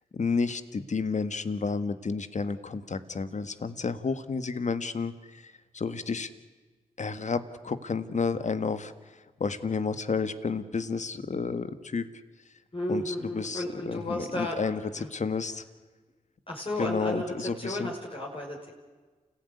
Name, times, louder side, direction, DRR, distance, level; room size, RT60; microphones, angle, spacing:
voice 1, 0.1-6.3 7.0-12.0 12.9-15.6 16.8-17.9, left 4 dB, 55° left, 12 dB, 1.7 m, -31 dB
voice 2, 12.7-14.6 15.0-15.1 16.5-18.7, left 1 dB, 40° left, -3 dB, 5.8 m, -33 dB
28.5 x 16.5 x 9.7 m, 1.3 s
supercardioid pair, 40°, 15 cm